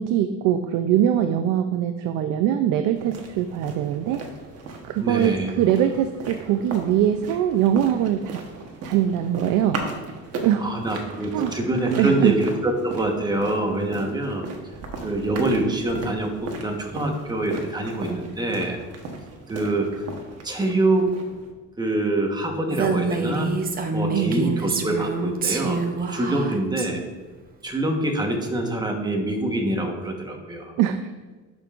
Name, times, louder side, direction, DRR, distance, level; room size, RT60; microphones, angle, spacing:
voice 1, 0.0-4.2 4.8-8.4 8.8-9.8 10.4-10.7 11.3-11.5 11.9-12.4 24.1-24.5 30.8-31.0, right 10 dB, 80° right, 8 dB, 0.5 m, -22 dB
sound 1, 2.9-21.5, right 3 dB, 50° right, 1.2 m, -37 dB
voice 2, 5.0-5.5 10.6-14.5 15.0-18.8 19.5-20.0 20.4-21.1 21.8-23.5 23.9-25.8 26.1-27.0 27.6-30.7, right 2 dB, 15° right, 2 dB, 1.1 m, -25 dB
Female speech woman speaking, 22.7-26.9, right 4 dB, 30° right, 0.7 m, -26 dB
11.5 x 5.3 x 2.5 m, 1.3 s
cardioid pair, 135°, 31 cm